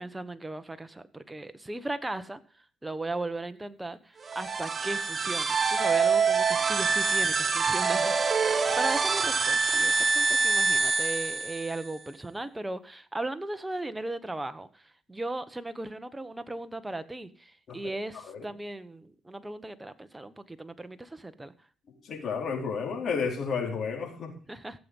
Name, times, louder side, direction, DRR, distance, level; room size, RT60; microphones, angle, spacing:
voice 1, 0.0-2.4 2.8-14.8 15.1-21.5 24.5-24.8, right 2 dB, 10° right, 10 dB, 1.2 m, -37 dB
sound 1, 4.2-11.9, right 5 dB, 40° right, 1.3 m, -25 dB
voice 2, 22.0-24.3, left 5 dB, 60° left, 1 dB, 4.6 m, -31 dB
16.0 x 7.7 x 5.5 m, 0.41 s
cardioid pair, 90°, 0 cm